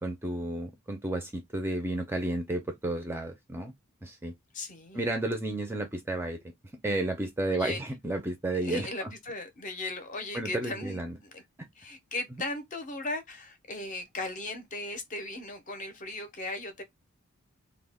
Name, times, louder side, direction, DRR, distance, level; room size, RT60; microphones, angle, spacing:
voice 1, 0.0-3.7 4.0-4.3 4.9-6.4 6.8-9.1 10.3-11.2, right 2 dB, 10° right, 0.4 m, -32 dB
voice 2, 4.5-5.1 7.5-7.8 8.5-11.4 11.8-16.8, left 2 dB, 35° left, 0.6 m, -37 dB
2.2 x 2.1 x 3.3 m
head